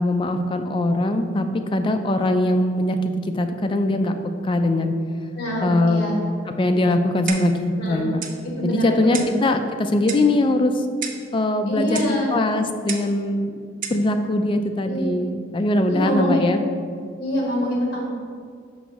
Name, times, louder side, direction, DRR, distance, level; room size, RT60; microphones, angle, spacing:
voice 1, 0.0-4.2 4.4-4.9 5.6-6.0 6.6-8.2 8.6-10.9 11.3-13.6 13.9-16.6, left 1 dB, 25° left, 6 dB, 0.3 m, -21 dB
voice 2, 5.4-6.1 7.8-8.0 8.6-9.3 11.7-12.3 14.8-15.1 15.9-16.5 17.2-18.1, equal, 55° left, -3 dB, 1.5 m, -25 dB
Clock, 7.3-7.6 8.2-8.4 9.1-9.4 10.1-10.3 11.0-11.3 11.9-12.2 12.9-13.1 13.8-14.0, right 6 dB, 45° right, 0.5 m, -32 dB
6.1 x 5.0 x 3.5 m, 2.2 s
head